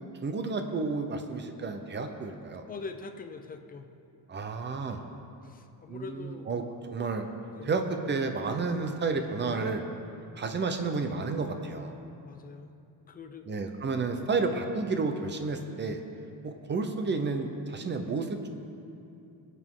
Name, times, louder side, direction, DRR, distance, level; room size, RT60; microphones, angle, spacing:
voice 1, 0.2-2.6 4.3-5.0 5.9-6.6 6.9-7.3 7.6-9.8 10.4-11.9 13.5-16.0 16.4-18.5, right 4 dB, 25° right, 6 dB, 0.8 m, -31 dB
voice 2, 2.7-3.9 5.4-6.5 7.5-7.7 12.2-12.7 13.1-13.7, left 4 dB, 20° left, 6 dB, 0.6 m, -43 dB
21.5 x 8.4 x 3.8 m, 2.6 s
cardioid pair, 175°, 40 cm